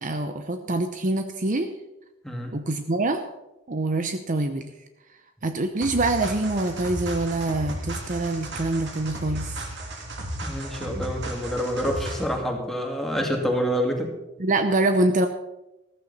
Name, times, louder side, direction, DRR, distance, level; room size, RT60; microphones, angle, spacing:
voice 1, 0.0-1.7 2.5-3.2 3.7-4.7 5.4-9.6 14.4-15.3, right 2 dB, 40° right, 7 dB, 0.8 m, -25 dB
sound 1, 5.8-12.4, right 1 dB, 60° right, 2.8 m, -34 dB
voice 2, 10.4-14.1, equal, ahead, 1 dB, 2.5 m, -27 dB
14.5 x 14.5 x 4.2 m, 0.97 s
head